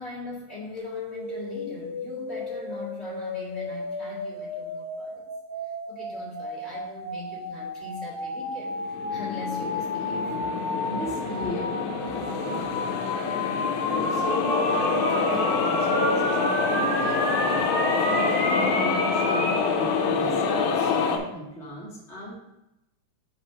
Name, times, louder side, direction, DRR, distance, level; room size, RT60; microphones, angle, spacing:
voice 1, 0.0-5.2 5.9-10.3, left 3 dB, 25° left, -8 dB, 1.6 m, -40 dB
sound 1, 0.8-19.7, left 1 dB, 55° left, 2.3 m, -31 dB
sound 2, 8.7-21.2, left 5 dB, 75° left, 2.0 m, -26 dB
voice 2, 10.8-11.7 12.4-12.8 13.9-17.7 18.1-22.4, equal, 5° left, -7 dB, 0.5 m, -37 dB
4.9 x 4.3 x 5.7 m, 0.91 s
omnidirectional pair, 3.8 m